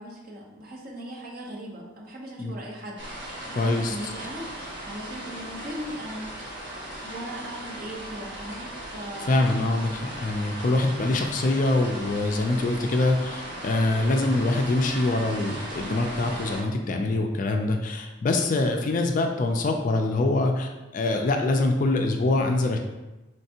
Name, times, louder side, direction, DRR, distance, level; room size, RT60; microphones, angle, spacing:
voice 1, 0.0-4.5 4.8-6.3 7.0-9.5, equal, 45° right, -2 dB, 0.8 m, -38 dB
sound 1, 3.0-16.6, right 1 dB, 60° right, 1.3 m, -37 dB
voice 2, 3.6-4.0 9.2-22.8, left 2 dB, 40° left, 3 dB, 0.3 m, -24 dB
4.4 x 3.2 x 2.8 m, 1.1 s
head